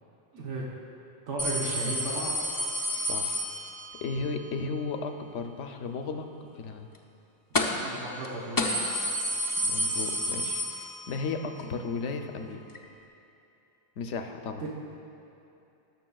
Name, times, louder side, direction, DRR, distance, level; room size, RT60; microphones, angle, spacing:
voice 1, 0.3-0.7 1.3-2.4 7.8-8.7 14.6-14.7, right 2 dB, 75° right, -4 dB, 1.4 m, -34 dB
sound 1, 1.4-4.1 7.5-7.9 8.2-8.3 8.6-11.3 11.6-11.7 12.7-12.8, left 1 dB, 30° left, 0.4 m, -30 dB
voice 2, 3.1-3.4 4.0-6.3 6.5-6.9 9.6-12.6 14.0-14.6, left 4 dB, 75° left, 6 dB, 0.9 m, -35 dB
18.0 x 6.7 x 2.3 m, 2.8 s
omnidirectional pair, 1.2 m